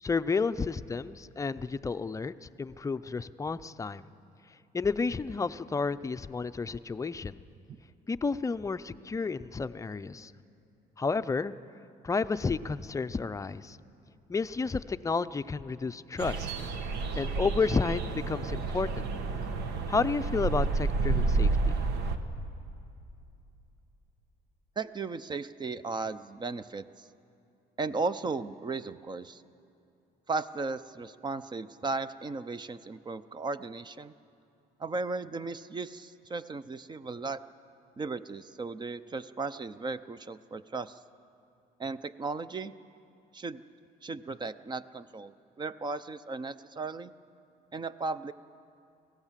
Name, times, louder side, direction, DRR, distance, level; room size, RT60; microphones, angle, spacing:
voice 1, 0.0-4.1 4.7-7.4 8.1-10.3 11.0-11.5 12.0-13.8 14.3-16.5 17.2-19.1 19.9-21.7, left 4 dB, 20° left, 12 dB, 0.5 m, -31 dB
sound 1, 16.2-22.2, right 3 dB, 80° right, 1.3 m, -30 dB
voice 2, 24.8-26.9 27.8-29.4 30.3-34.1 34.8-37.4 38.0-41.0 41.8-42.7 43.3-43.6 44.0-47.1 47.7-48.3, right 3 dB, 25° right, 14 dB, 0.6 m, -36 dB
25.0 x 16.5 x 7.4 m, 2.7 s
cardioid pair, 110°, 17 cm